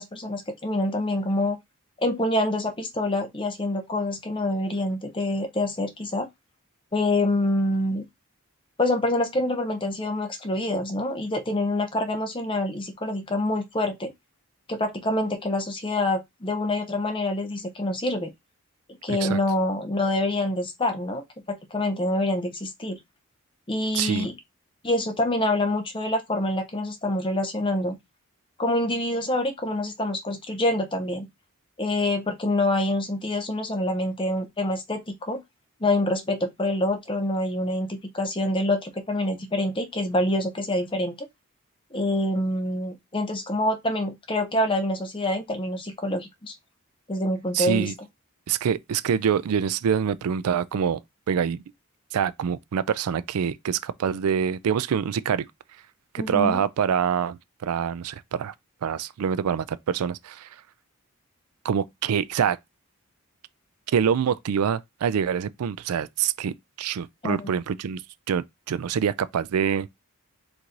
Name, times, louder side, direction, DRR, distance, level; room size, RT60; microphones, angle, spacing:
voice 1, 0.0-1.6 2.0-6.3 6.9-8.0 8.8-14.1 14.7-18.3 19.0-23.0 23.7-24.3 24.8-28.0 28.6-31.3 31.8-35.4 35.8-41.3 41.9-46.5 47.1-47.9 56.2-56.6 67.2-67.5, left 1 dB, 20° left, 0.7 m, -26 dB
voice 2, 19.1-19.4 23.9-24.3 47.5-47.9 48.5-51.0 51.3-51.6 52.1-55.5 56.1-58.5 58.8-60.5 61.6-62.6 63.9-68.0 68.3-69.9, right 7 dB, 80° right, 0.4 m, -25 dB
4.5 x 2.6 x 3.8 m
head